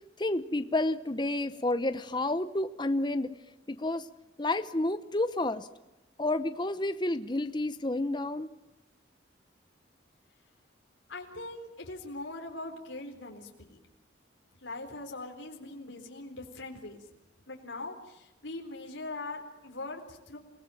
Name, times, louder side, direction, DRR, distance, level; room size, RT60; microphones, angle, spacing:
voice 1, 0.2-3.3 3.7-4.1 4.4-5.7 6.2-8.5, left 2 dB, 25° left, 11 dB, 0.9 m, -30 dB
voice 2, 11.1-13.8 14.6-17.0 17.5-20.4, left 2 dB, 75° left, 2 dB, 4.0 m, -41 dB
29.0 x 18.0 x 9.1 m, 0.99 s
head